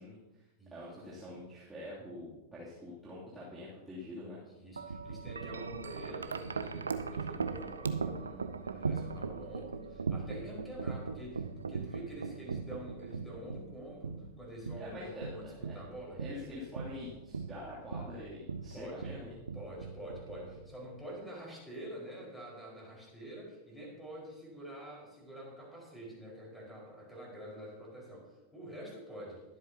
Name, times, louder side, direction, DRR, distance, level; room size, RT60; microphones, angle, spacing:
voice 1, 0.0-0.4 0.7-4.4 14.8-15.7 16.2-19.4, left 1 dB, 10° right, -9 dB, 2.9 m, -45 dB
voice 2, 0.6-1.0 4.5-16.2 18.7-19.0 19.5-29.4, right 1 dB, 5° left, -3 dB, 4.9 m, -47 dB
Wind chime, 4.8-20.9, right 5 dB, 75° right, 0.6 m, -39 dB
22.0 x 8.1 x 2.9 m, 0.99 s
figure-of-eight pair, 90°, 0 cm